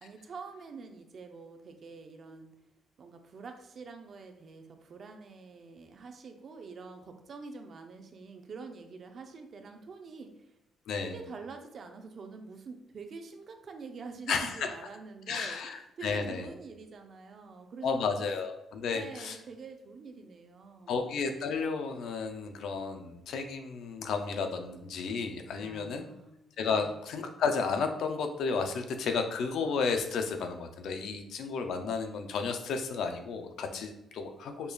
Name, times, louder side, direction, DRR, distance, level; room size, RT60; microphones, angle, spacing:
voice 1, 0.0-2.5 3.0-10.5 11.1-18.2 18.9-21.0 25.6-26.3 26.7-27.0, right 4 dB, 55° right, 5 dB, 0.5 m, -46 dB
voice 2, 10.9-11.2 14.3-14.7 15.3-16.5 17.8-19.4 20.9-26.1 26.6-34.7, left 5 dB, 75° left, 6 dB, 0.4 m, -32 dB
5.1 x 2.3 x 2.3 m, 0.90 s
cardioid pair, 90°, 0 cm